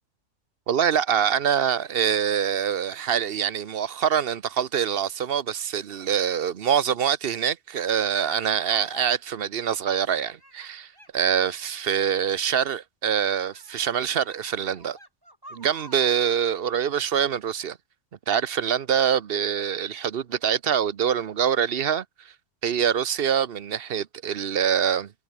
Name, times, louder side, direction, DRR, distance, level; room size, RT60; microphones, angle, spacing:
voice 1, 0.7-15.0 15.5-17.8 18.3-22.0 22.6-25.1, right 8 dB, 50° right, 0.9 m, -25 dB
sound 1, 8.6-9.0 9.7-12.5 13.1-16.3, right 1 dB, 15° right, 5.5 m, -49 dB
omnidirectional pair, 1.4 m